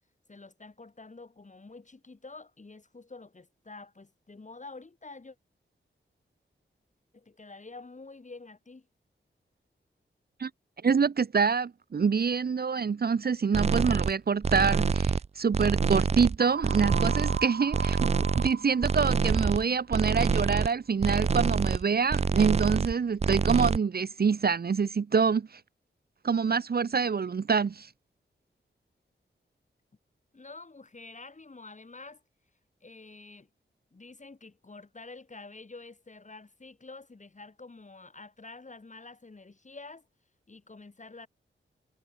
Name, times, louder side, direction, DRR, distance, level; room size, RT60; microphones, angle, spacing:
voice 1, 0.3-5.4 7.1-8.9 30.3-32.2 32.8-33.5 33.9-40.1 40.5-41.3, left 3 dB, 40° left, 6.5 m, -48 dB
voice 2, 10.8-25.6 26.2-27.9, right 5 dB, 50° right, 0.8 m, -26 dB
sound 1, 13.5-14.1 14.4-15.3 15.5-16.4 16.6-17.5 17.7-18.5 18.8-19.6 19.9-20.7 21.0-21.8 22.1-22.9 23.2-23.8, right 5 dB, 35° right, 0.4 m, -26 dB
sound 2, 16.4-20.3, right 6 dB, 80° right, 2.7 m, -39 dB
wide cardioid pair, 85°, 20 cm